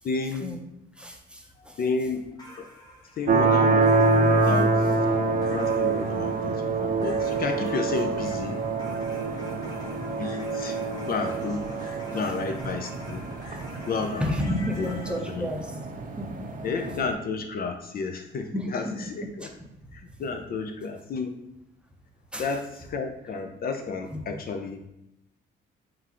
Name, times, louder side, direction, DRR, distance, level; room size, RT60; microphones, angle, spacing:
voice 1, 0.0-0.5 1.8-2.2 3.2-3.9 4.5-5.0 5.5-8.6 10.1-10.8 11.1-11.6 12.1-13.2 13.9-14.2 14.8-14.9 15.3-15.5 16.6-19.5 19.9-21.3 22.4-24.8, left 4 dB, 50° left, 5 dB, 0.5 m, -31 dB
voice 2, 1.0-1.8 12.4-12.7 13.4-13.6 14.2-15.8 16.2-16.5 18.5-18.9 19.4-19.7 22.3-22.5 24.1-24.2, left 1 dB, 5° right, 1 dB, 0.6 m, -32 dB
sound 1, 2.4-15.2, equal, 20° left, 1.2 m, -46 dB
sound 2, 3.3-17.1, right 3 dB, 45° right, 0.6 m, -26 dB
3.8 x 2.5 x 4.2 m, 0.87 s
cardioid pair, 90°, 20 cm